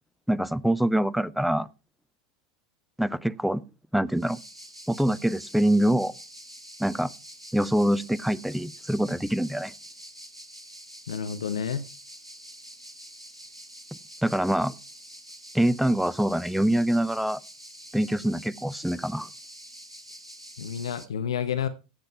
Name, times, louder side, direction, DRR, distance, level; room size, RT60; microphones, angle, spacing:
voice 1, 0.3-1.7 3.0-3.6 3.9-4.4 4.9-6.1 6.8-7.1 7.5-9.7 14.2-14.7 15.5-17.4 17.9-19.3, right 1 dB, ahead, 0.6 m, -24 dB
sound 1, 4.1-21.1, equal, 90° right, 1.5 m, -46 dB
voice 2, 11.1-11.9 20.6-21.7, left 8 dB, 70° left, 1.0 m, -30 dB
16.5 x 7.8 x 4.6 m
figure-of-eight pair, 85°, 3 cm